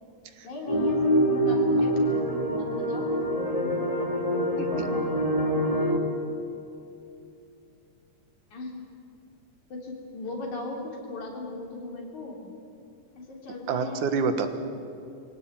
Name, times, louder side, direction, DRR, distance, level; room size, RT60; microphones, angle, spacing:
voice 1, 0.4-3.1 8.5-8.7 9.7-12.4 13.3-14.1, left 2 dB, 75° left, 0 dB, 5.1 m, -38 dB
sound 1, 0.7-6.0, equal, 15° left, 1.9 m, -25 dB
voice 2, 4.6-4.9 13.7-14.5, right 5 dB, 85° right, 8 dB, 2.9 m, -28 dB
24.0 x 17.0 x 9.1 m, 2.7 s
omnidirectional pair, 3.4 m